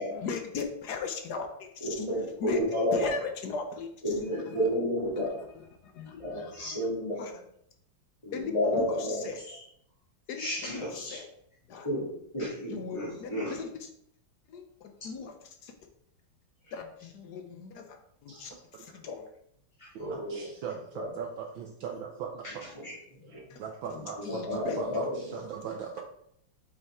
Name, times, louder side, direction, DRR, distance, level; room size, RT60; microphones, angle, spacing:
voice 1, 0.1-2.0 2.4-2.6 2.9-4.7 5.2-7.3 8.3-9.4 10.3-11.3 11.7-11.9 12.7-13.9 14.5-15.4 15.6-15.7 16.7-19.3 23.5-23.6 23.9-25.0, left 5 dB, 60° left, 5 dB, 1.2 m, -39 dB
voice 2, 1.8-3.1 4.0-5.4 6.2-7.4 8.2-9.6 10.4-11.2 11.8-12.1 12.3-13.5 20.0-20.4 22.8-22.9 24.3-25.1, equal, 15° left, -10 dB, 2.0 m, -31 dB
voice 3, 18.3-19.0 20.1-22.7 23.3-26.0, right 7 dB, 70° right, 3 dB, 1.4 m, -39 dB
7.7 x 5.7 x 3.6 m, 0.70 s
omnidirectional pair, 2.4 m